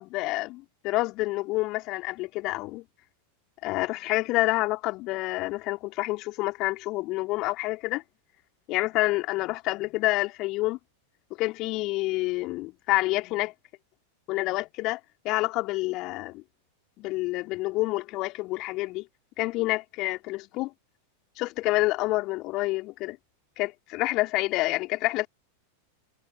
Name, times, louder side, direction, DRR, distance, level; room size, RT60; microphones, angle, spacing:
voice 1, 0.0-2.8 3.6-8.0 8.7-10.8 11.4-13.5 14.3-16.4 17.0-19.1 19.4-20.7 21.4-23.2 23.6-25.3, left 20 dB, 40° left, 3.7 m, -28 dB
figure-of-eight pair, 90°, 0 cm